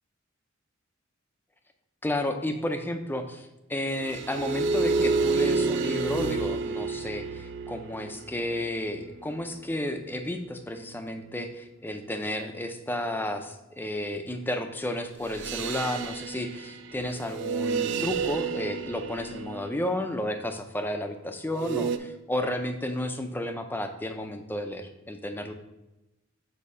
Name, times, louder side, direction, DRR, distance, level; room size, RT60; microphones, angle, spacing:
voice 1, 2.0-25.5, left 1 dB, 10° left, 6 dB, 0.5 m, -32 dB
sound 1, 4.0-9.5 15.3-19.9 21.6-22.0, right 4 dB, 60° right, 0.4 m, -30 dB
8.2 x 2.8 x 5.5 m, 0.96 s
head